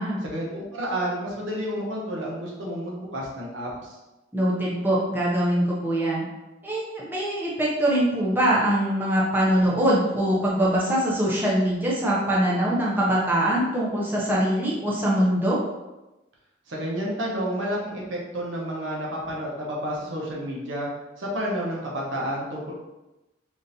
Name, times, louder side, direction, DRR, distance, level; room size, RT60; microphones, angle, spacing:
voice 1, 0.2-3.9 16.7-20.9 21.2-22.7, equal, 85° right, -3 dB, 0.9 m, -30 dB
voice 2, 4.3-6.2 6.6-15.6, right 1 dB, 10° right, -5 dB, 0.6 m, -23 dB
3.7 x 2.5 x 2.6 m, 1.0 s
head